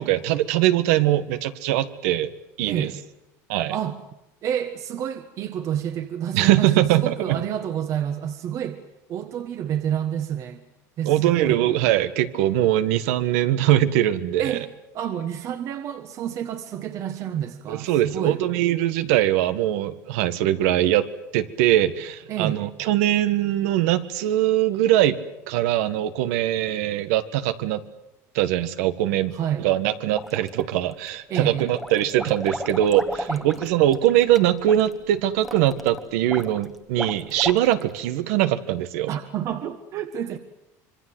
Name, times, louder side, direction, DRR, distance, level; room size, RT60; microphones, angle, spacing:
voice 1, 0.0-2.3 2.6-2.9 3.5-3.8 6.3-7.4 11.1-14.7 17.7-21.0 21.3-25.2 25.5-27.8 28.4-39.1, right 13 dB, 80° right, 11 dB, 1.6 m, -22 dB
voice 2, 2.7-3.0 3.7-4.0 4.4-8.8 9.1-10.6 11.0-11.6 14.4-14.7 14.9-18.4 22.3-22.6 29.3-29.7 31.3-31.7 33.3-33.4 39.1-40.4, right 9 dB, 40° right, 8 dB, 1.4 m, -29 dB
sound 1, 30.1-30.9 31.3-38.0, equal, ahead, 1.2 m, -35 dB
26.0 x 23.5 x 7.9 m, 0.90 s
cardioid pair, 150°, 8 cm